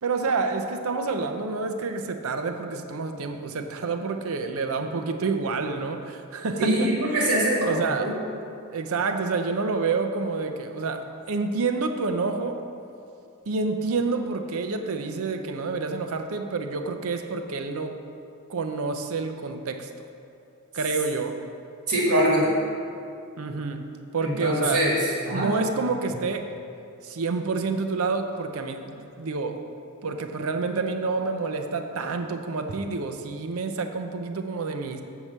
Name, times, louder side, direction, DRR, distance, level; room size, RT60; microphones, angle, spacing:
voice 1, 0.0-6.9 7.2-7.3 7.6-8.2 8.7-12.6 13.5-18.0 18.5-19.9 20.7-21.4 23.4-23.8 24.1-24.8 25.3-26.5 27.0-29.6 30.0-35.0, right 4 dB, 65° right, 6 dB, 0.6 m, -28 dB
voice 2, 6.6-8.2 21.9-22.6 24.2-25.6, right 1 dB, 90° right, -4 dB, 1.6 m, -23 dB
7.2 x 4.7 x 6.6 m, 2.6 s
head